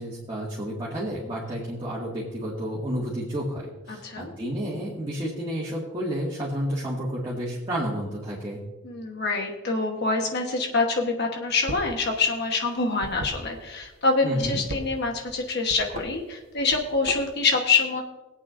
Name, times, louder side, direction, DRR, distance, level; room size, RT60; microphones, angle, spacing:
voice 1, 0.0-8.6 14.2-14.6, equal, 20° right, -7 dB, 2.0 m, -31 dB
voice 2, 3.9-4.3 8.8-18.0, left 3 dB, 50° left, 2 dB, 1.2 m, -25 dB
sound 1, 11.5-12.0 12.2-13.9 14.3-15.4 15.7-16.1 16.6-17.4, right 1 dB, 65° right, 1.2 m, -36 dB
20.5 x 8.6 x 2.6 m, 1.1 s
head